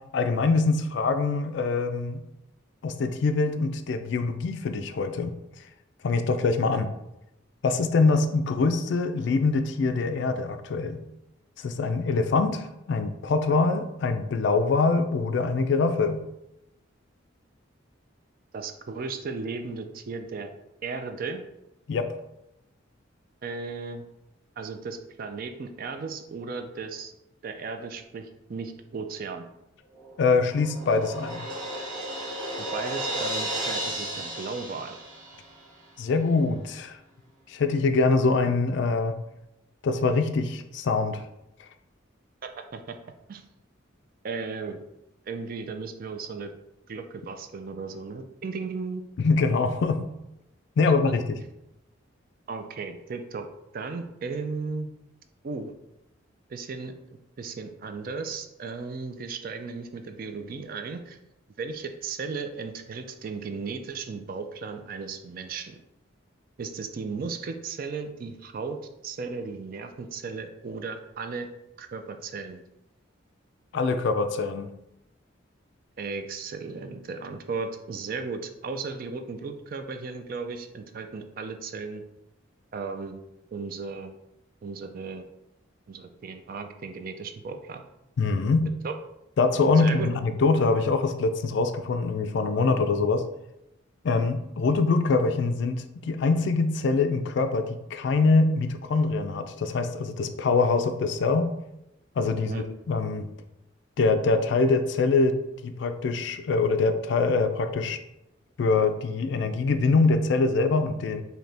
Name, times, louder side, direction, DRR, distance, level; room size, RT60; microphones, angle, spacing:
voice 1, 0.1-2.2 2.8-5.3 6.0-6.9 7.6-11.0 11.6-16.2 21.9-22.1 30.2-31.4 36.0-37.0 37.5-39.2 39.8-41.2 49.2-50.1 50.8-51.4 73.7-74.7 88.2-88.7 89.4-93.2 94.0-101.5 102.2-103.3 104.0-105.4 105.6-108.0 108.6-111.2, left 3 dB, 60° left, 8 dB, 0.3 m, -24 dB
voice 2, 18.5-20.5 20.8-21.4 23.4-24.1 24.6-27.1 27.4-29.5 32.6-35.0 42.4-43.0 43.3-43.4 44.2-44.8 45.2-46.5 46.9-49.0 52.5-53.5 53.7-54.9 55.4-55.7 56.5-56.9 57.4-61.2 61.6-65.8 66.6-68.8 69.0-71.5 71.8-72.6 76.0-82.0 82.7-83.2 83.5-84.1 84.6-85.3 85.9-87.8 88.8-88.9 89.8-90.1 102.5-102.6, right 4 dB, 45° right, 6 dB, 0.4 m, -35 dB
Crash cymbal, 30.0-35.7, right 1 dB, 75° right, 1.4 m, -34 dB
4.0 x 2.8 x 3.3 m, 0.87 s
head